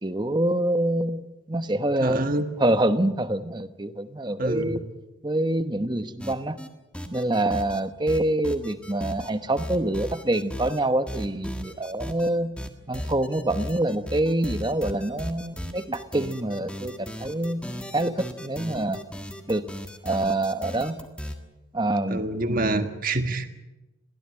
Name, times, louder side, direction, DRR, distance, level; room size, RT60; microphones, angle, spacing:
voice 1, 0.0-2.3 2.6-4.8 5.2-6.6 7.1-12.5 12.9-17.6 17.9-19.0 19.5-19.7 20.0-21.0 21.7-22.3, right 1 dB, 20° right, 10 dB, 1.0 m, -26 dB
voice 2, 2.0-2.4 4.4-4.8 22.1-23.5, right 2 dB, 40° right, 7 dB, 1.7 m, -26 dB
sound 1, 6.2-6.7 6.9-7.8 8.1-9.3 9.6-10.8 11.1-12.3 12.6-21.4, equal, 5° left, 1.7 m, -36 dB
22.5 x 16.5 x 8.9 m, 1.0 s
head